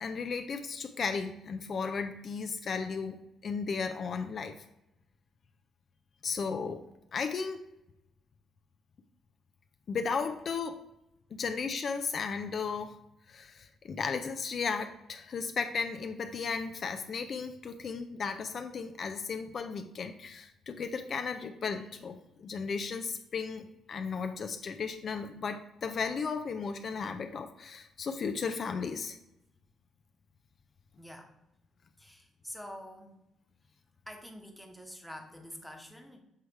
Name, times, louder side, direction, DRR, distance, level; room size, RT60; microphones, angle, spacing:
voice 1, 0.0-3.2 3.4-4.5 6.2-6.8 7.1-7.6 9.9-10.8 11.3-12.9 13.3-29.2, left 5 dB, 50° left, 7 dB, 0.5 m, -35 dB
voice 2, 31.0-31.3 32.0-33.2 34.1-36.2, equal, ahead, 3 dB, 1.1 m, -46 dB
6.7 x 3.2 x 4.6 m, 0.88 s
cardioid pair, 90°, 0 cm